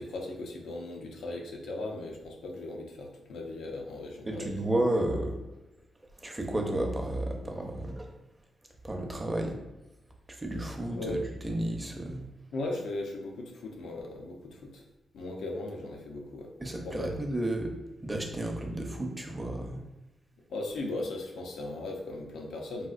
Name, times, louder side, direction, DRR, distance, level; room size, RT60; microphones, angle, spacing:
voice 1, 0.0-4.6 11.0-11.2 12.5-14.8 15.1-16.5 16.8-17.1 20.5-22.9, left 2 dB, 90° left, 1 dB, 0.6 m, -37 dB
voice 2, 4.2-5.4 6.2-8.1 8.8-9.6 10.3-12.2 16.6-17.7 18.0-19.8, right 1 dB, 15° right, 2 dB, 0.6 m, -32 dB
4.1 x 2.4 x 2.4 m, 1.0 s
cardioid pair, 85°, 0 cm